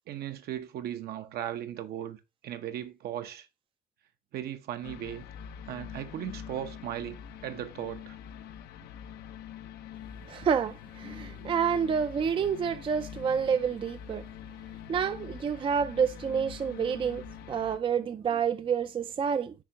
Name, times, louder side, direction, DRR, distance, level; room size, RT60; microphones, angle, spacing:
voice 1, 0.1-2.2 2.4-3.5 4.3-5.2 5.7-8.2, right 11 dB, 65° right, 0.8 m, -37 dB
sound 1, 4.8-17.8, left 9 dB, 75° left, 0.6 m, -45 dB
voice 2, 10.3-14.3 14.9-19.5, right 7 dB, 30° right, 0.4 m, -29 dB
9.8 x 3.5 x 2.8 m
cardioid pair, 110°, 17 cm